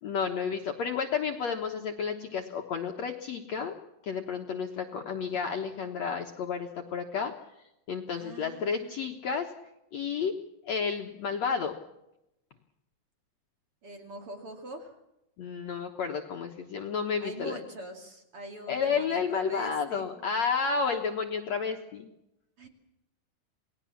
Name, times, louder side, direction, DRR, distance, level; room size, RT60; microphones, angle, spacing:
voice 1, 0.0-3.7 4.0-7.3 7.9-9.5 9.9-10.3 10.7-11.7 15.4-17.6 18.7-22.1, left 6 dB, 60° left, 3 dB, 1.9 m, -31 dB
voice 2, 8.1-8.9 13.8-15.0 17.2-20.1 22.6-22.7, right 1 dB, 40° right, 4 dB, 3.0 m, -43 dB
28.5 x 19.5 x 7.3 m, 0.89 s
omnidirectional pair, 4.6 m